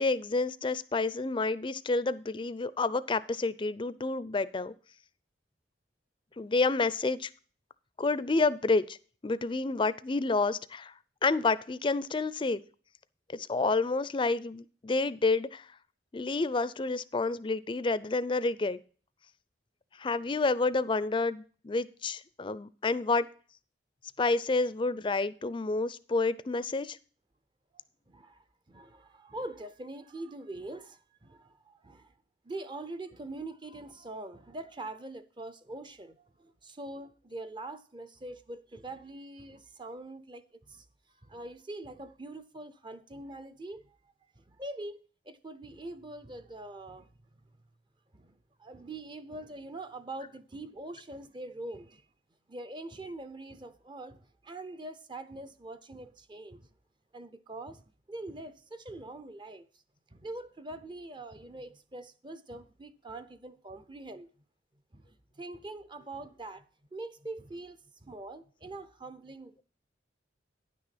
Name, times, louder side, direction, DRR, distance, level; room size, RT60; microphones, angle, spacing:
voice 1, 0.0-4.7 6.4-7.3 8.0-9.0 9.2-10.9 11.2-12.6 13.3-15.6 16.1-18.8 20.0-23.3 24.2-27.0, left 3 dB, 25° left, 0.4 m, -29 dB
voice 2, 27.7-32.1 32.4-40.9 41.2-44.0 44.4-47.1 48.1-48.3 48.6-52.0 52.5-56.7 57.1-59.7 60.1-64.3 64.9-66.6 66.9-69.6, right 2 dB, 25° right, 0.6 m, -43 dB
10.0 x 6.1 x 5.8 m
head